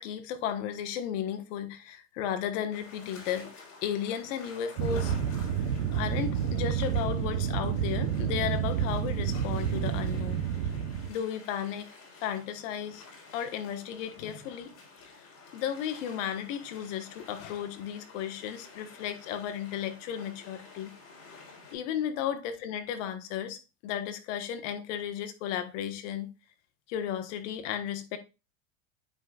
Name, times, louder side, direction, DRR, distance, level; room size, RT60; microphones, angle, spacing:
voice 1, 0.0-3.5 3.8-5.1 5.9-10.4 11.1-11.9 12.2-13.0 13.3-14.7 15.0-15.1 15.5-20.9 21.7-26.3 26.9-28.2, left 9 dB, 65° left, 1.3 m, -34 dB
sound 1, 2.7-21.7, left 4 dB, 40° left, 3.7 m, -51 dB
sound 2, 4.8-11.1, right 8 dB, 75° right, 0.9 m, -29 dB
9.3 x 5.2 x 2.4 m
supercardioid pair, 135°, 40 cm